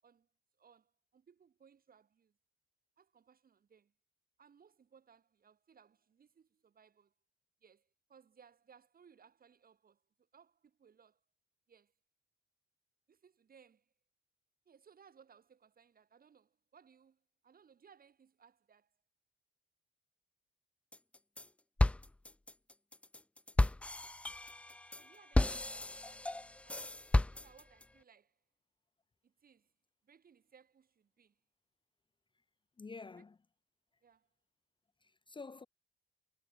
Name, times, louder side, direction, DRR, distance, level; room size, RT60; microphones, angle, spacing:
voice 1, 0.6-2.4 3.0-3.9 4.4-7.1 7.6-11.2 11.7-11.9 13.1-13.9 14.7-18.9 25.0-26.3 26.6-26.9 27.3-28.4 29.2-29.7 30.0-31.4 33.2-33.3 34.0-34.3, right 7 dB, 45° right, 7.3 m, -65 dB
sound 1, 20.9-21.5 21.8-27.8, left 2 dB, 5° left, 0.3 m, -33 dB
voice 2, 32.8-33.4 35.0-35.7, left 4 dB, 25° left, 1.0 m, -49 dB
cardioid pair, 90°, 20 cm